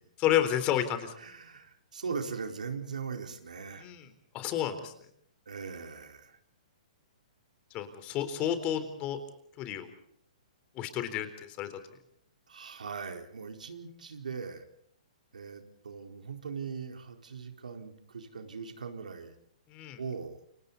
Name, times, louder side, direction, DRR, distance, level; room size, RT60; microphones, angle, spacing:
voice 1, 0.2-1.1 3.8-4.1 4.3-4.9 7.7-9.2 9.6-9.9 10.8-11.7 19.7-20.0, left 11 dB, 30° left, 10 dB, 4.0 m, -30 dB
voice 2, 1.2-3.9 5.5-6.4 12.5-14.6 15.3-19.3 20.0-20.4, right 5 dB, 85° right, 5 dB, 4.3 m, -40 dB
29.0 x 26.0 x 4.1 m, 0.68 s
hypercardioid pair, 140°, 4 cm